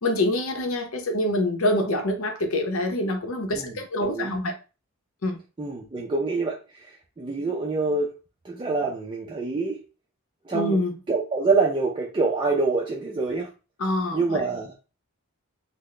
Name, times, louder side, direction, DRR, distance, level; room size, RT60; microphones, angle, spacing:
voice 1, 0.0-4.5 5.2-5.4 10.5-11.0 13.8-14.4, left 1 dB, 75° left, 0.7 m, -25 dB
voice 2, 3.6-4.3 5.6-8.2 8.4-9.8 10.5-10.8 11.1-13.5 14.1-14.8, right 3 dB, 20° right, 0.4 m, -26 dB
3.9 x 2.0 x 3.2 m
head